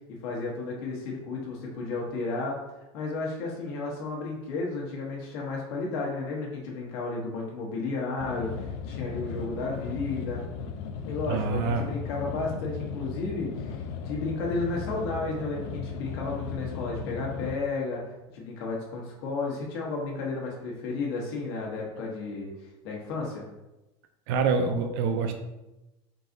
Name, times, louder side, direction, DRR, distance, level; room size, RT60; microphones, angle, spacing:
voice 1, 0.1-2.6 2.9-10.4 11.0-23.5, left 3 dB, 70° left, -2 dB, 1.0 m, -33 dB
sound 1, 8.2-17.6, left 6 dB, 55° left, 0.4 m, -36 dB
voice 2, 11.3-11.9 24.3-25.3, right 5 dB, 70° right, 6 dB, 0.5 m, -26 dB
3.8 x 2.5 x 3.8 m, 0.99 s
supercardioid pair, 140°, 14 cm